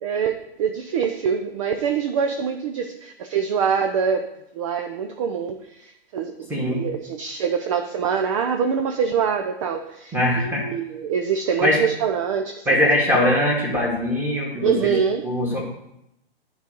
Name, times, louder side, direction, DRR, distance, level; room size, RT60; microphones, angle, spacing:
voice 1, 0.0-4.3 4.6-5.6 6.1-6.3 6.7-12.6 14.6-15.2, right 7 dB, 35° right, 6 dB, 0.5 m, -24 dB
voice 2, 6.5-6.8 10.1-10.6 11.6-11.8 12.7-14.9 15.2-15.6, left 1 dB, 5° right, -2 dB, 2.0 m, -21 dB
10.5 x 4.0 x 6.4 m, 0.83 s
figure-of-eight pair, 115°, 30 cm